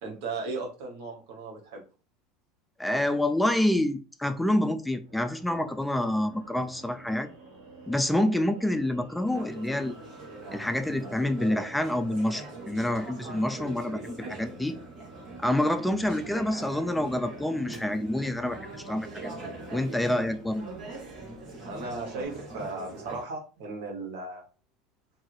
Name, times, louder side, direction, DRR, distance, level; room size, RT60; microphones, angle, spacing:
voice 1, 0.0-1.8 21.6-24.5, right 3 dB, 70° right, 1.2 m, -36 dB
voice 2, 2.8-7.4 7.9-10.0 10.5-14.8 15.4-18.6 18.8-19.3 19.7-20.7, left 1 dB, 5° left, 0.3 m, -27 dB
sound 1, 5.0-22.3, right 1 dB, 90° right, 1.3 m, -50 dB
Conversation / Chatter, 9.2-23.2, right 2 dB, 35° right, 1.7 m, -42 dB
2.6 x 2.5 x 3.1 m
supercardioid pair, 135°, 0 cm